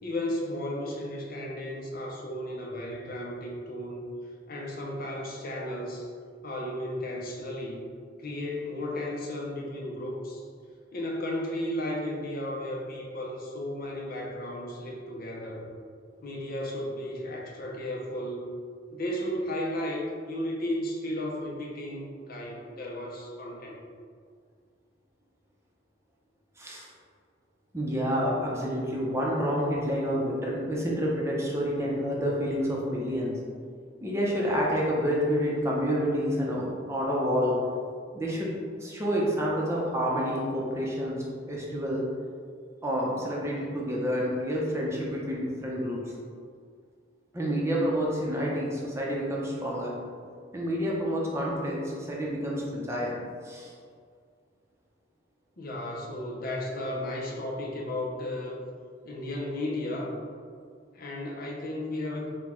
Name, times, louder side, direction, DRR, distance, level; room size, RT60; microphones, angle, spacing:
voice 1, 0.0-4.1 4.5-6.1 6.4-7.9 8.2-10.4 10.9-15.7 16.2-18.5 18.9-23.8 55.6-58.6 59.0-60.1 60.9-62.3, left 1 dB, 55° left, -1 dB, 0.7 m, -34 dB
voice 2, 27.7-33.3 34.0-37.5 38.1-38.5 38.8-41.2 41.5-42.0 42.8-46.0 47.3-49.9 50.5-53.1 53.4-53.7, equal, 15° right, -4 dB, 0.7 m, -28 dB
4.4 x 2.3 x 4.3 m, 2.1 s
head